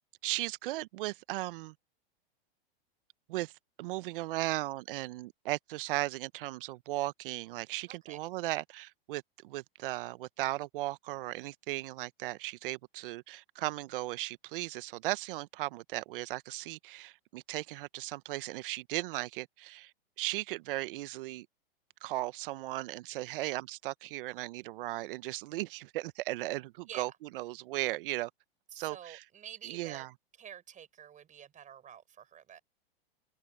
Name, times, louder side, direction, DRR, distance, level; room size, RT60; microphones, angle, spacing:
voice 1, 0.2-1.7 3.3-3.5 3.8-19.9 20.2-21.5 22.0-28.3 28.7-29.2 29.6-30.1, right 18 dB, 60° right, 1.1 m, -36 dB
voice 2, 7.9-8.2 26.9-27.2 28.7-30.1 30.4-32.6, right 9 dB, 25° right, 6.8 m, -49 dB
hypercardioid pair, 120°, 30 cm